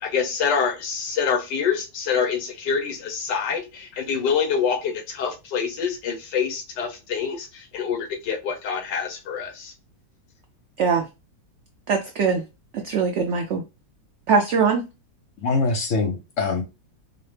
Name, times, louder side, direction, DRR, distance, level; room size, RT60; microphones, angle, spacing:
voice 1, 0.0-9.7, left 6 dB, 80° left, 1.5 m, -26 dB
voice 2, 11.9-12.4 12.7-13.6 14.3-14.8, right 5 dB, 80° right, 0.6 m, -21 dB
voice 3, 15.4-16.6, left 3 dB, 60° left, 0.9 m, -23 dB
4.8 x 2.0 x 3.2 m
omnidirectional pair, 1.8 m